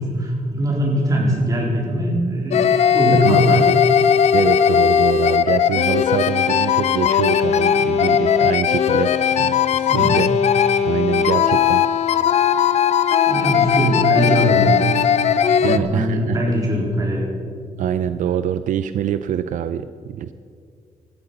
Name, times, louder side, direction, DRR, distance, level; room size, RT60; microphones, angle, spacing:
voice 1, 0.0-3.6 9.9-10.2 13.2-15.0 15.3-17.3, right 1 dB, 25° right, -2 dB, 3.8 m, -21 dB
sound 1, 2.5-15.8, left 8 dB, 55° left, 0.7 m, -17 dB
voice 2, 3.1-3.8 4.3-11.8 15.6-16.4 17.8-20.3, right 9 dB, 70° right, 12 dB, 0.5 m, -25 dB
18.0 x 12.5 x 5.5 m, 2.2 s
wide cardioid pair, 175°, 14 cm